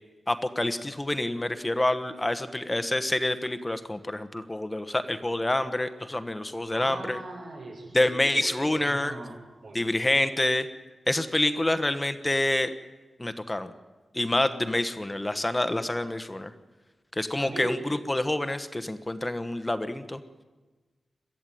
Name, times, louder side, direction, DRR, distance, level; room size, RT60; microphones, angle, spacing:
voice 1, 0.3-7.2 7.9-9.1 9.7-10.7 11.1-12.7 13.2-13.7 14.1-16.5 17.2-20.2, left 1 dB, 20° left, 11 dB, 1.2 m, -27 dB
voice 2, 6.7-9.4 9.6-9.8 10.3-10.4 17.4-17.8, right 2 dB, 85° right, 0 dB, 6.1 m, -39 dB
22.5 x 13.5 x 9.2 m, 1.3 s
wide cardioid pair, 80°, 0 cm